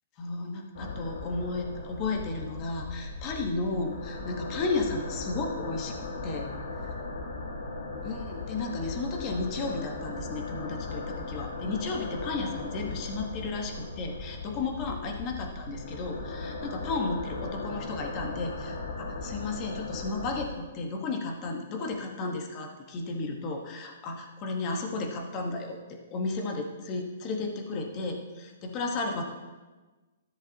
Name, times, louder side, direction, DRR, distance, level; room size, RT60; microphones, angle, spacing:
voice 1, 0.2-6.0 6.2-6.5 8.0-25.8 26.1-29.2, left 3 dB, 30° left, 3 dB, 1.3 m, -33 dB
sound 1, 0.7-20.5, left 3 dB, 70° left, 1.9 m, -38 dB
13.5 x 7.3 x 2.9 m, 1.2 s
hypercardioid pair, 145°, 0 cm